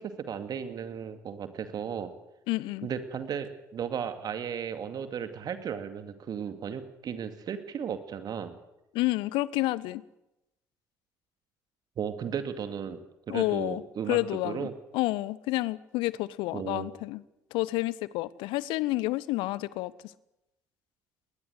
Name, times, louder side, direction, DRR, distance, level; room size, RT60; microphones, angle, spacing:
voice 1, 0.0-2.1 2.8-8.6 12.0-13.0 13.3-14.2 14.4-14.7 16.5-16.9, right 7 dB, 45° right, 2.4 m, -35 dB
voice 2, 2.5-2.9 8.9-10.0 13.3-14.7 14.9-17.2 17.5-19.9, left 18 dB, 60° left, 0.9 m, -29 dB
21.0 x 20.0 x 8.0 m
figure-of-eight pair, 50°, 9 cm